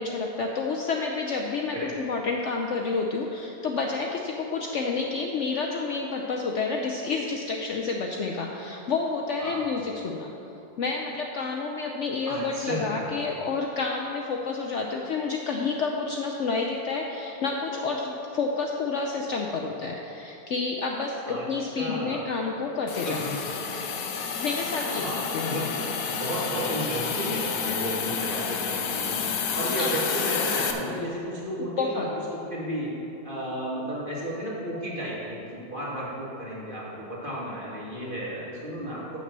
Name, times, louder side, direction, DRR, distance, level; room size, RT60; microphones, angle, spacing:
voice 1, 0.0-10.3 10.8-23.3 24.4-25.9 29.8-30.0 31.8-32.1, left 4 dB, 60° left, 1 dB, 0.8 m, -29 dB
voice 2, 12.3-12.9 21.3-21.4 21.8-22.2 23.1-23.4 24.7-25.6 26.0-29.2 29.5-32.0 32.5-32.9 33.2-39.2, equal, 35° right, -7 dB, 2.2 m, -33 dB
Hiss, 22.9-30.7, left 6 dB, 90° left, 1.3 m, -30 dB
7.9 x 6.3 x 6.6 m, 2.9 s
omnidirectional pair, 1.6 m